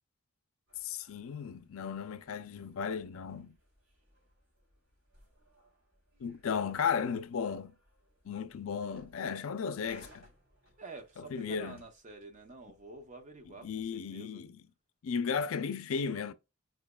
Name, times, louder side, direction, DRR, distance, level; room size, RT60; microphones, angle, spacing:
sound 1, 0.7-13.9, equal, 75° right, 2.3 m, -64 dB
voice 1, 0.8-3.6 6.2-7.7 8.2-10.3 11.2-11.8 13.5-14.6 15.0-16.3, left 6 dB, 80° left, 0.4 m, -35 dB
voice 2, 10.8-14.4, right 3 dB, 40° right, 0.7 m, -49 dB
4.7 x 3.0 x 2.2 m
head